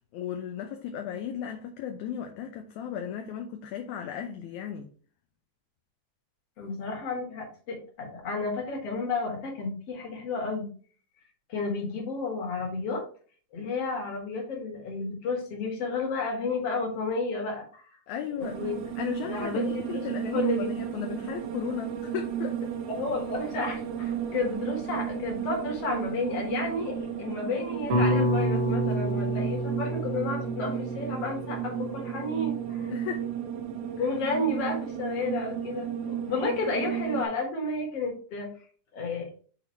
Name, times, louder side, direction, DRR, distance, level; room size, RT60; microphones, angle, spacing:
voice 1, 0.1-4.9 18.1-18.6 19.0-22.7 32.9-33.2 34.0-34.1, left 9 dB, 75° left, 2.0 m, -35 dB
voice 2, 6.6-10.7 11.5-13.0 13.5-17.9 18.4-18.8 19.3-20.0 20.3-20.7 22.9-32.9 34.0-38.5 38.9-39.4, left 3 dB, 50° left, 2.5 m, -32 dB
sound 1, 18.4-37.2, right 9 dB, 80° right, 1.4 m, -34 dB
sound 2, 27.9-32.2, right 1 dB, 55° right, 1.6 m, -28 dB
5.8 x 4.0 x 4.5 m
omnidirectional pair, 3.7 m